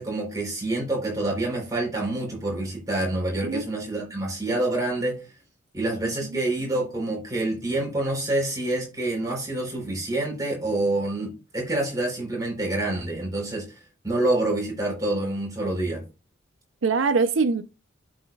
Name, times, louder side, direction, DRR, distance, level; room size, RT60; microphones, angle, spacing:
voice 1, 0.0-5.2 5.7-16.0, right 2 dB, 20° right, 3.7 m, -27 dB
voice 2, 6.0-6.4 16.8-17.6, right 4 dB, 80° right, 0.6 m, -23 dB
12.5 x 5.2 x 2.3 m
head